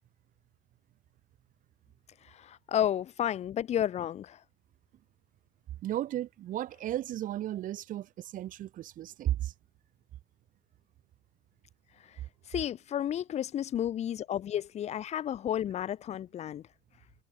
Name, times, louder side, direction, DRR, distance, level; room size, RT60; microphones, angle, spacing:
voice 1, 2.3-4.4 12.5-16.6, left 10 dB, 35° left, 0.9 m, -32 dB
voice 2, 5.8-9.5, right 13 dB, 40° right, 1.1 m, -34 dB
supercardioid pair, 120°, 20 cm